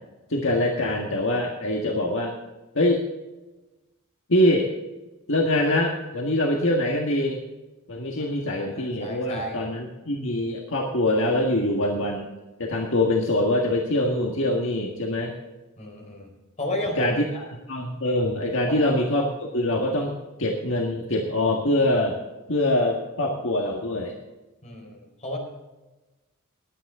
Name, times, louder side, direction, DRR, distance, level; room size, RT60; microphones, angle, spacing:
voice 1, 0.3-2.3 2.7-3.0 4.3-4.7 5.3-7.4 7.9-12.3 12.6-15.3 17.0-17.2 17.7-20.1 20.4-22.2 22.5-24.1, left 1 dB, 60° left, 0 dB, 1.7 m, -24 dB
voice 2, 8.2-9.6 15.8-16.3 16.6-17.4 18.7-18.8 24.6-25.4, left 1 dB, 30° left, 1 dB, 4.5 m, -33 dB
21.0 x 9.3 x 3.7 m, 1.1 s
head